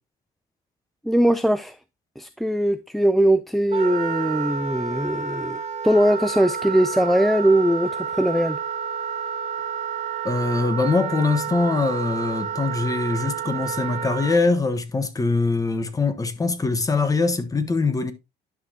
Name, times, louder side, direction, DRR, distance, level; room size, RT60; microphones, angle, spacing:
voice 1, 1.0-1.8 2.2-8.6, right 1 dB, ahead, 0.4 m, -21 dB
Wind instrument woodwind instrument, 3.7-14.4, right 7 dB, 40° right, 1.9 m, -30 dB
voice 2, 10.2-18.1, left 3 dB, 20° left, 1.2 m, -23 dB
11.0 x 6.2 x 2.8 m
cardioid pair, 110°, 17 cm